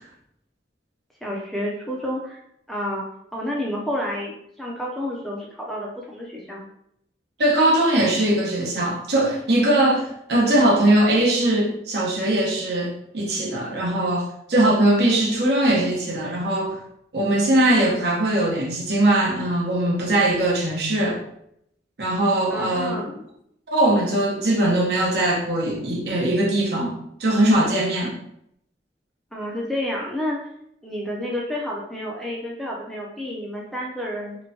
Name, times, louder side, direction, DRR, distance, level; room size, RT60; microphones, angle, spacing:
voice 1, 1.2-2.4 2.7-3.0 3.3-6.7 22.5-23.3 29.3-30.4 30.8-34.4, left 1 dB, ahead, -3 dB, 0.3 m, -30 dB
voice 2, 7.4-16.8 17.1-21.2 22.0-23.0 23.7-28.2, right 1 dB, 70° right, -2 dB, 0.7 m, -20 dB
2.9 x 2.1 x 2.6 m, 0.75 s
head